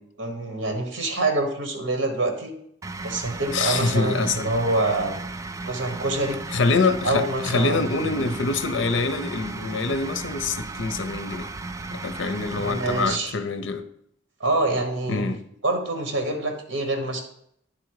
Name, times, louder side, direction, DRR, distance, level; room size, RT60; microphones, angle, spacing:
voice 1, 0.2-2.5 3.0-5.1 5.6-6.4 7.0-8.3 12.5-13.3 14.4-15.3 15.6-17.2, right 2 dB, 80° right, 1.3 m, -26 dB
sound 1, 2.8-13.2, right 3 dB, 15° right, 0.3 m, -35 dB
voice 2, 3.5-4.5 6.5-11.5 11.9-13.8 15.1-15.4, left 4 dB, 70° left, 0.6 m, -25 dB
9.6 x 3.8 x 4.7 m
head